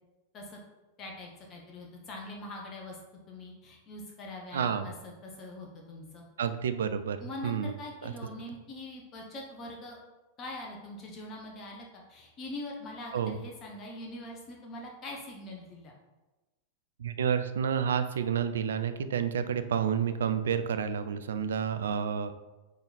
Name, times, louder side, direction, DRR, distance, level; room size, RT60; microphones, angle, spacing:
voice 1, 1.0-3.0 3.3-6.2 7.2-10.0 10.4-15.9, left 1 dB, 30° left, 0 dB, 1.1 m, -43 dB
voice 2, 4.5-4.9 6.4-7.2 7.4-7.7 8.0-8.1 13.1-13.3 17.0-22.3, right 7 dB, 65° right, 10 dB, 0.4 m, -29 dB
6.3 x 4.0 x 4.1 m, 1.1 s
figure-of-eight pair, 90°, 0 cm